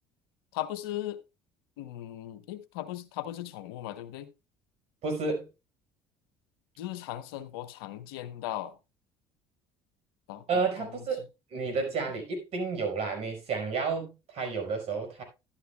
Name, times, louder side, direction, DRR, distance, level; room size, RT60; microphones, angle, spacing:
voice 1, 0.5-1.2 1.8-4.3 6.8-8.8 10.3-10.4 10.8-11.1, left 13 dB, 90° left, 0.9 m, -37 dB
voice 2, 5.0-5.4 10.5-11.2 11.5-15.2, right 4 dB, 60° right, 5.1 m, -31 dB
12.0 x 11.0 x 2.3 m
supercardioid pair, 80°, 12 cm